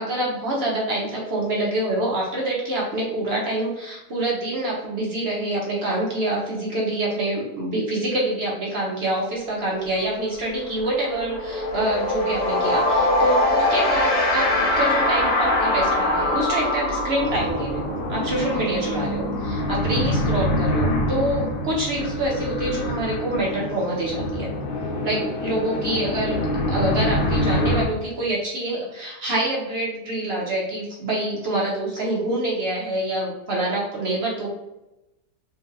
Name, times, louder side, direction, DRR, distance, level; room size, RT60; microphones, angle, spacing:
voice 1, 0.0-24.5 25.0-26.4 26.7-34.5, right 1 dB, 55° right, -4 dB, 0.7 m, -26 dB
sound 1, 9.6-9.8 10.1-20.6, left 1 dB, 85° left, 1.5 m, -23 dB
sound 2, 17.2-27.8, left 1 dB, 70° left, 0.9 m, -26 dB
3.8 x 2.2 x 2.7 m, 0.95 s
omnidirectional pair, 1.8 m